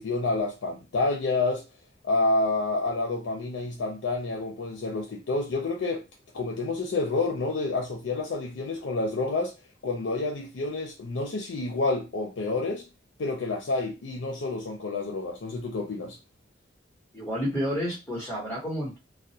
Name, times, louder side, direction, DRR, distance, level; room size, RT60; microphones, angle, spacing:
voice 1, 0.0-1.6 2.0-6.0 6.3-9.5 9.8-12.8 13.2-16.2, left 3 dB, 90° left, 0.5 m, -29 dB
voice 2, 17.1-19.0, equal, 5° left, 1.0 m, -30 dB
2.3 x 2.1 x 2.7 m
head